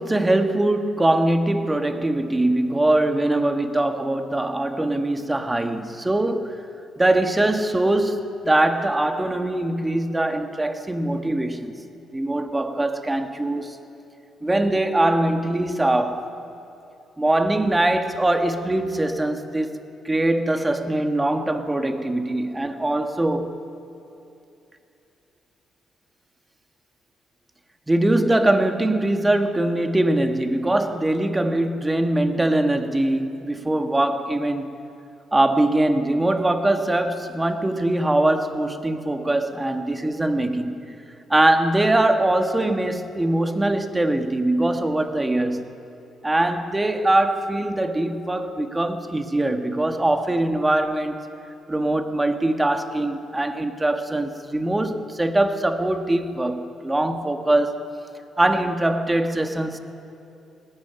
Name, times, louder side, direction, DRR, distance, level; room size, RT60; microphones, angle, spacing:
voice 1, 0.0-6.6 7.0-11.8 12.1-13.8 14.4-16.3 17.2-19.8 20.0-23.6 27.9-34.7 35.3-40.9 41.3-45.8 46.2-51.3 51.7-57.8 58.4-59.8, right 1 dB, 15° right, 1.5 m, -22 dB
18.5 x 15.0 x 9.7 m
cardioid pair, 90°, 0 cm